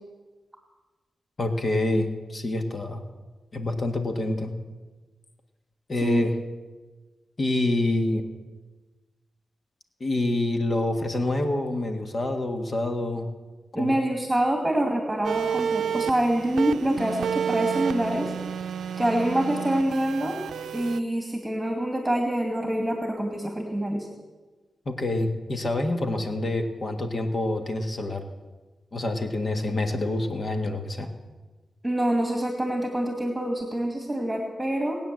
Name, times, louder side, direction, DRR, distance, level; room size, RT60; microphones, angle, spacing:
voice 1, 1.4-3.0 3.5-4.5 5.9-6.3 7.4-8.2 10.0-13.3 13.7-14.0 24.8-28.2 28.9-31.1, left 2 dB, 45° left, 5 dB, 1.7 m, -27 dB
voice 2, 13.7-18.3 19.0-20.4 20.7-24.1 31.8-35.0, right 1 dB, 10° right, 3 dB, 2.4 m, -26 dB
sound 1, 15.2-21.0, right 8 dB, 90° right, 0.6 m, -30 dB
19.5 x 9.1 x 7.7 m, 1.3 s
cardioid pair, 75°, 0 cm